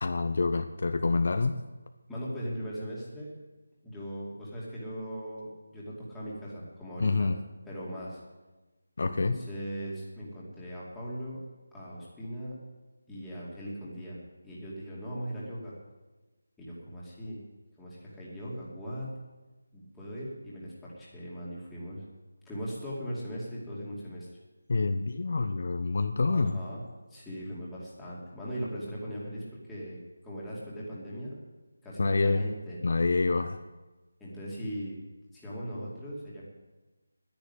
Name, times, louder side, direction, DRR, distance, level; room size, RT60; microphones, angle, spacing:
voice 1, 0.0-1.6 7.0-7.4 9.0-9.4 24.7-26.6 32.0-32.5 32.8-33.6, left 3 dB, 50° left, 8 dB, 0.7 m, -27 dB
voice 2, 2.1-3.3 3.8-7.3 7.6-8.2 9.0-11.4 11.7-12.6 13.1-15.8 16.6-17.4 17.8-19.1 19.7-22.0 22.4-24.3 26.3-26.8 27.1-30.0 30.2-31.4 31.8-32.8 34.2-35.0 35.3-36.4, equal, 5° left, -9 dB, 2.5 m, -39 dB
10.5 x 10.0 x 9.8 m, 1.2 s
figure-of-eight pair, 175°, 0 cm